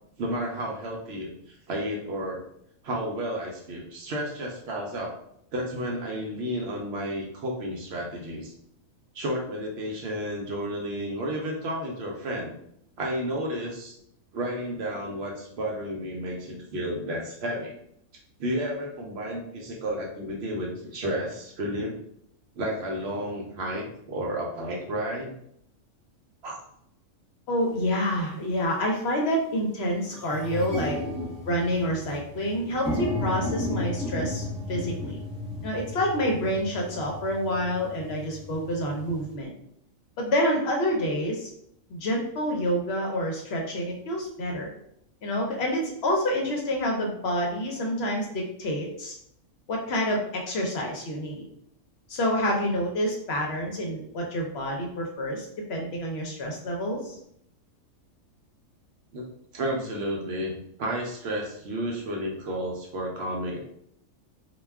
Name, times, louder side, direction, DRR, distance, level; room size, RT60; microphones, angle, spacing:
voice 1, 0.2-2.4 2.8-5.1 5.5-8.5 9.1-12.5 13.0-13.9 14.3-17.8 18.4-22.0 22.6-25.3 26.4-26.6 31.1-31.3 59.1-59.2 59.5-63.6, equal, 65° right, -1 dB, 0.7 m, -32 dB
voice 2, 27.5-31.0 31.5-35.2 35.6-39.5 40.2-41.5 41.9-44.7 45.2-49.1 49.7-51.4 52.1-57.2, equal, 65° left, 0 dB, 0.7 m, -28 dB
sound 1, 27.8-27.9 28.6-28.9 29.3-29.4 29.6-39.3, left 2 dB, 10° left, 0.7 m, -34 dB
2.2 x 2.2 x 3.3 m, 0.73 s
omnidirectional pair, 1.3 m